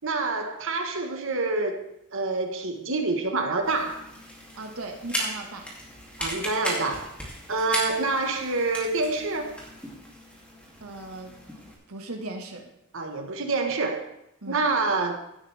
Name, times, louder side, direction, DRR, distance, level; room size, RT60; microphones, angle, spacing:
voice 1, 0.0-4.1 6.2-7.2 7.5-9.6 12.9-14.1 14.5-15.2, right 3 dB, 65° right, 1.3 m, -27 dB
sound 1, 3.6-11.7, equal, 5° left, 2.7 m, -37 dB
voice 2, 4.5-5.7 10.8-11.3 11.9-12.7 14.4-14.6, right 2 dB, 85° right, 1.6 m, -37 dB
16.5 x 9.2 x 3.5 m
head